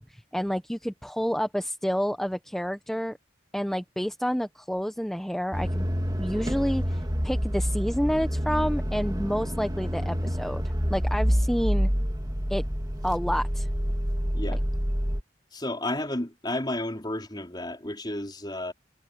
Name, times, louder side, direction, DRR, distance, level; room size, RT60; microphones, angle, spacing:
voice 1, 0.0-3.2 3.5-5.9 6.2-10.6 10.9-11.9 12.5-12.6 13.0-13.7 14.5-14.6, equal, ahead, 0.9 m, -29 dB
sound 1, 5.5-15.2, equal, 20° right, 2.7 m, -27 dB
voice 2, 15.5-18.7, left 1 dB, 25° left, 4.4 m, -32 dB
head